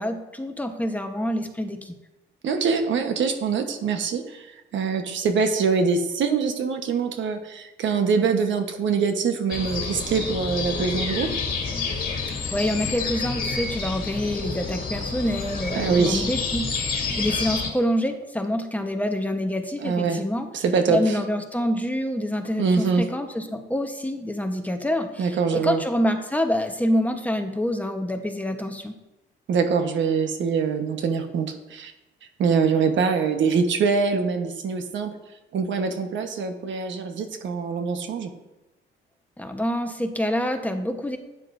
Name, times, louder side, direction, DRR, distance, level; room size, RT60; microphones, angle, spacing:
voice 1, 0.0-2.0 12.5-20.5 20.9-28.9 39.4-41.2, equal, 10° left, 5 dB, 1.0 m, -26 dB
voice 2, 2.4-4.5 4.7-11.3 15.7-16.3 19.8-20.2 20.5-21.2 22.6-23.0 25.2-25.8 29.5-31.9 32.4-35.1 35.5-38.3, right 5 dB, 70° right, 6 dB, 1.2 m, -24 dB
sound 1, 9.5-17.7, left 4 dB, 45° left, 2.3 m, -29 dB
12.0 x 9.5 x 2.6 m, 1.0 s
cardioid pair, 90°, 20 cm